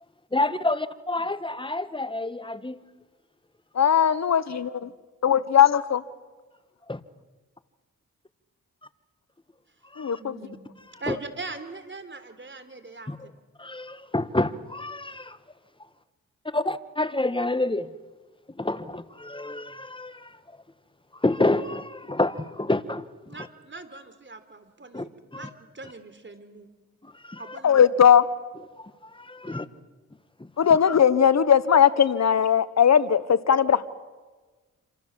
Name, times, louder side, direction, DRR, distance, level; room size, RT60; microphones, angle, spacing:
voice 1, 0.3-2.8 6.9-7.0 9.9-10.2 11.1-11.2 13.1-13.2 13.6-15.4 16.5-17.9 18.6-20.4 21.2-23.1 24.9-25.1 25.3-25.5 27.0-27.6 28.8-29.7 30.4-30.8, left 2 dB, 15° left, 13 dB, 1.6 m, -28 dB
voice 2, 3.7-4.9 5.2-6.0 10.0-10.3 27.6-28.2 30.6-33.8, left 8 dB, 55° left, 15 dB, 1.2 m, -19 dB
voice 3, 10.2-10.7 11.0-13.1 23.3-26.7 27.4-27.8 29.4-29.7, right 3 dB, 35° right, 10 dB, 3.9 m, -41 dB
27.0 x 26.5 x 7.5 m, 1.3 s
supercardioid pair, 50°, 32 cm